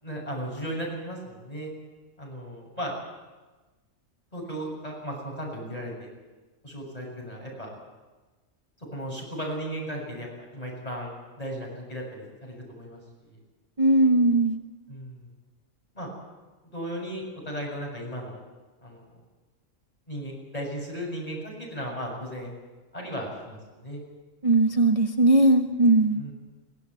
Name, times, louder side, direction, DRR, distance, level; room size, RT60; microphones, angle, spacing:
voice 1, 0.0-1.7 2.2-2.9 4.3-6.1 6.6-7.7 8.9-13.4 14.9-15.3 15.9-16.1 16.6-18.4 18.8-19.1 20.1-22.5 22.9-24.0 26.1-26.3, equal, 30° left, -2 dB, 7.4 m, -36 dB
voice 2, 13.8-14.6 24.4-26.2, right 2 dB, 30° right, 3 dB, 1.0 m, -19 dB
23.0 x 16.5 x 8.2 m, 1.2 s
omnidirectional pair, 1.4 m